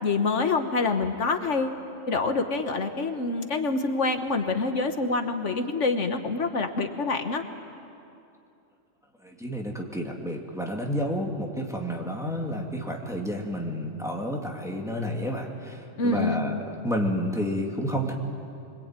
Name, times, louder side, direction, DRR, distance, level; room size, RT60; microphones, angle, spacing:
voice 1, 0.0-1.8 2.1-7.4 16.0-16.4, left 3 dB, 65° left, 6 dB, 1.6 m, -26 dB
voice 2, 9.2-18.1, equal, ahead, 0 dB, 2.5 m, -30 dB
25.5 x 24.0 x 9.0 m, 2.6 s
omnidirectional pair, 1.3 m